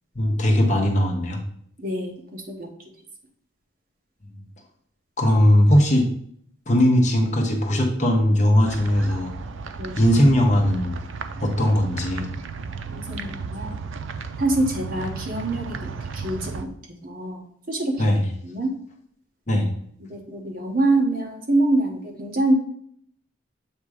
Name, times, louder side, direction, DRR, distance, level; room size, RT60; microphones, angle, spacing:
voice 1, 0.2-1.4 5.2-6.1 6.7-9.3 10.0-11.0 11.4-12.3 18.0-18.2 19.5-19.7, equal, 35° left, 2 dB, 0.9 m, -19 dB
voice 2, 1.8-2.7 9.8-10.0 12.9-13.8 14.4-16.7 17.0-17.4 17.7-18.0 18.4-18.7 20.0-22.5, right 2 dB, 45° right, 1 dB, 1.1 m, -25 dB
sound 1, 8.7-16.6, right 5 dB, 75° right, 0.5 m, -34 dB
7.4 x 2.9 x 4.8 m, 0.65 s
head